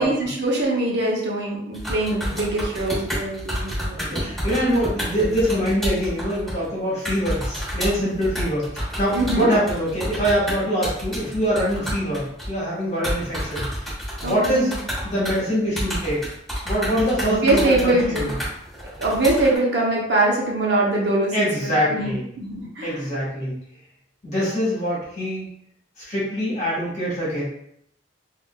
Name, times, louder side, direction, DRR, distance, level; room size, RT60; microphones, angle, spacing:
voice 1, 0.0-4.4 9.1-9.5 14.2-14.7 17.2-18.2 19.0-21.3 21.9-22.9, right 2 dB, 60° right, -3 dB, 0.8 m, -23 dB
sound 1, 1.7-6.7 7.0-12.6 13.0-15.4 15.8-19.6, equal, ahead, 1.2 m, -29 dB
voice 2, 3.9-13.9 14.2-14.8 15.0-16.2 16.6-18.3 21.3-22.3 22.8-23.5 24.2-25.4 26.0-27.4, equal, 35° left, -9 dB, 1.4 m, -24 dB
3.5 x 2.4 x 2.2 m, 0.72 s
head